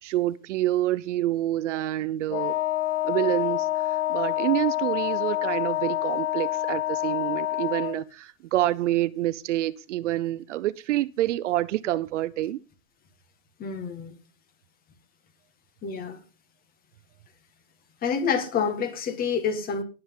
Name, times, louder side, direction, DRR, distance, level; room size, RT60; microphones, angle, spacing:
voice 1, 0.0-2.5 3.0-12.6, right 15 dB, 55° right, 0.6 m, -27 dB
Wind instrument woodwind instrument, 2.3-8.0, left 14 dB, 50° left, 0.6 m, -27 dB
voice 2, 13.6-14.1 15.8-16.2 18.0-19.8, left 6 dB, 20° left, 1.8 m, -27 dB
19.0 x 7.7 x 3.8 m
hypercardioid pair, 140°, 43 cm